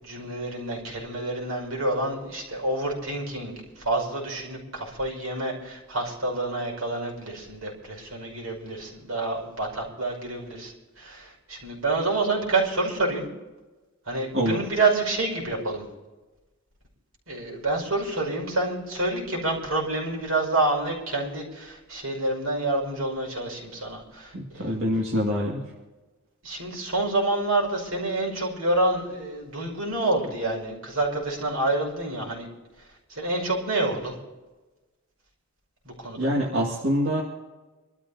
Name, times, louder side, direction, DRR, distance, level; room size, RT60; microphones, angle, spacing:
voice 1, 0.0-13.2 14.1-15.8 17.3-24.8 26.4-32.5 33.1-34.1 35.9-36.4, right 2 dB, 85° right, -1 dB, 5.6 m, -28 dB
voice 2, 24.3-25.6 36.2-37.2, equal, 60° right, -3 dB, 2.1 m, -25 dB
25.5 x 13.5 x 2.8 m, 1.2 s
head